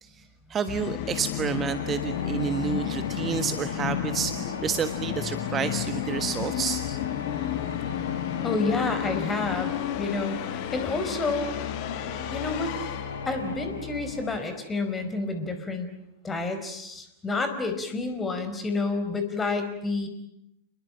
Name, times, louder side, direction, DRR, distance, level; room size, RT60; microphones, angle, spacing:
voice 1, 0.5-4.3 4.6-6.8, right 7 dB, 25° right, 10 dB, 1.5 m, -29 dB
Musical instrument, 0.7-14.4, left 11 dB, 45° left, 1.6 m, -32 dB
sound 1, 1.7-15.5, left 3 dB, 80° left, 2.5 m, -40 dB
voice 2, 8.4-9.7 10.0-11.5 12.3-12.7 13.2-15.9 16.2-20.1, left 3 dB, 15° left, 8 dB, 5.0 m, -29 dB
29.5 x 21.5 x 9.1 m, 0.81 s
figure-of-eight pair, 90°, 0 cm